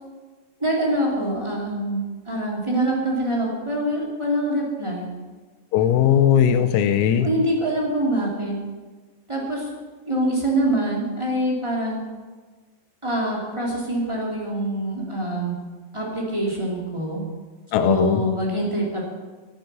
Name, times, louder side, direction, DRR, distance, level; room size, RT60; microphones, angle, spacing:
voice 1, 0.6-5.1 7.2-8.6 9.3-9.7 10.0-12.0 13.0-15.5 15.9-17.2 17.8-19.0, right 1 dB, 15° right, -3 dB, 1.0 m, -25 dB
voice 2, 5.7-7.3 17.7-18.2, left 9 dB, 85° left, 9 dB, 3.6 m, -18 dB
17.0 x 9.5 x 6.9 m, 1.4 s
omnidirectional pair, 6.0 m